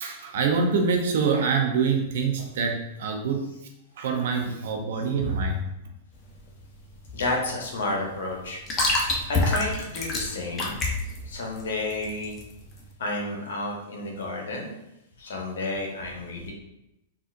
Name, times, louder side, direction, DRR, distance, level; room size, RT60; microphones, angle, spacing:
voice 1, 0.0-3.4 4.0-5.7, right 5 dB, 65° right, 4 dB, 0.5 m, -25 dB
sound 1, 6.1-12.8, left 2 dB, 25° left, 0.7 m, -29 dB
voice 2, 7.1-8.6 9.3-10.8 11.2-12.4 13.0-14.7 15.2-16.5, left 2 dB, 70° left, 0 dB, 0.8 m, -31 dB
3.8 x 2.4 x 2.5 m, 0.90 s
hypercardioid pair, 110°, 0 cm